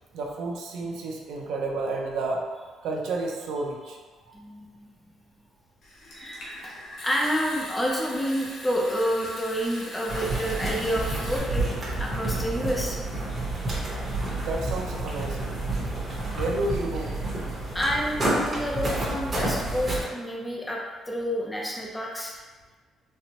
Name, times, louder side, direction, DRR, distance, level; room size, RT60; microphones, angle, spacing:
voice 1, 0.1-2.4 2.8-4.0 4.3-4.4 14.4-15.5 16.3-17.2, right 2 dB, 85° right, 0 dB, 0.5 m, -31 dB
voice 2, 4.3-4.9 6.2-6.7 7.0-11.7 12.0-13.0 17.7-22.4, equal, 10° left, -2 dB, 0.4 m, -29 dB
Water tap faucet / Sink (filling or washing) / Trickle dribble, 5.8-11.4, left 1 dB, 55° left, 0.7 m, -41 dB
sound 1, 10.1-20.0, right 2 dB, 25° right, 0.9 m, -29 dB
4.3 x 2.1 x 2.8 m, 1.4 s
cardioid pair, 180°, 0 cm